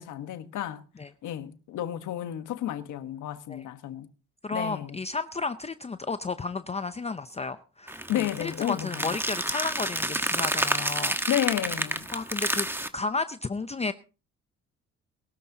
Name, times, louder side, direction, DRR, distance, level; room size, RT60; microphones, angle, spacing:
voice 1, 0.0-0.8 1.2-4.1 4.5-5.0 8.1-9.2 11.3-12.1, left 12 dB, 80° left, 1.3 m, -31 dB
voice 2, 4.4-11.2 12.1-12.7 12.9-13.9, left 3 dB, 20° left, 0.6 m, -32 dB
sound 1, 7.9-12.9, right 1 dB, 5° right, 1.2 m, -29 dB
21.5 x 13.0 x 2.8 m
cardioid pair, 90°, 30 cm